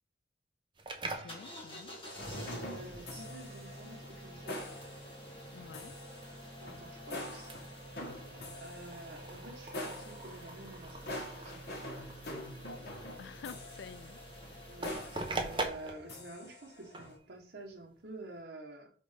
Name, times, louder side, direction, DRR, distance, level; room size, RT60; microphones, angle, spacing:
sound 1, 0.7-18.4, right 2 dB, 25° right, 0.8 m, -45 dB
voice 1, 1.0-2.0 5.5-6.0 13.2-14.2, left 6 dB, 85° left, 0.3 m, -49 dB
sound 2, 1.3-15.7, right 1 dB, 30° left, 2.0 m, -49 dB
sound 3, 2.0-17.2, left 1 dB, 65° left, 1.6 m, -46 dB
voice 2, 2.2-4.6 6.6-7.5 8.6-11.9 14.7-15.0 15.2-18.9, right 2 dB, 75° right, 1.3 m, -49 dB
5.1 x 4.0 x 5.0 m
head